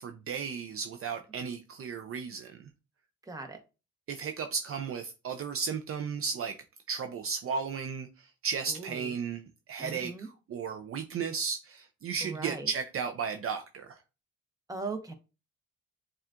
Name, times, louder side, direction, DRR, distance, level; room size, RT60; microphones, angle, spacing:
voice 1, 0.0-2.7 4.1-6.5 6.9-14.0, right 6 dB, 50° right, 0.5 m, -35 dB
voice 2, 3.3-3.6 8.7-9.1 9.8-10.3 12.2-12.7 14.7-15.1, right 3 dB, 10° right, 0.9 m, -39 dB
7.0 x 2.4 x 2.4 m
cardioid pair, 90°, 30 cm